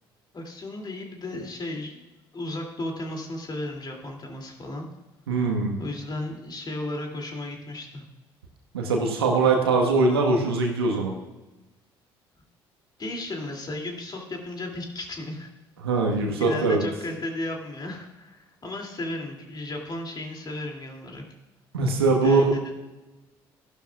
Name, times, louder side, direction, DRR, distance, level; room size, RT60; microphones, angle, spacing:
voice 1, 0.3-2.0 2.3-4.9 5.8-8.0 13.0-15.5 16.2-21.2 22.2-22.7, left 1 dB, 35° left, 2 dB, 2.6 m, -34 dB
voice 2, 5.3-5.8 8.7-11.2 15.8-16.8 21.7-22.5, right 3 dB, 85° right, 2 dB, 1.3 m, -22 dB
15.0 x 11.5 x 2.3 m, 1.1 s
figure-of-eight pair, 55°, 13 cm